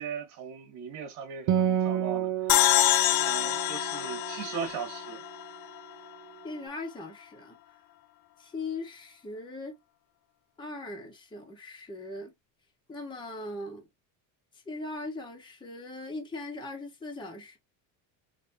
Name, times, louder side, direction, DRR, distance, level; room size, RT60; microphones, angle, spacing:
voice 1, 0.0-5.2, right 6 dB, 85° right, 1.6 m, -39 dB
Acoustic guitar, 1.5-5.2, right 10 dB, 45° right, 0.6 m, -30 dB
sound 1, 2.5-5.8, left 16 dB, 55° left, 0.5 m, -26 dB
voice 2, 6.4-7.6 8.4-9.7 10.6-12.3 12.9-13.9 14.6-17.6, left 2 dB, 10° left, 1.3 m, -39 dB
4.3 x 3.0 x 2.7 m
supercardioid pair, 115°, 45 cm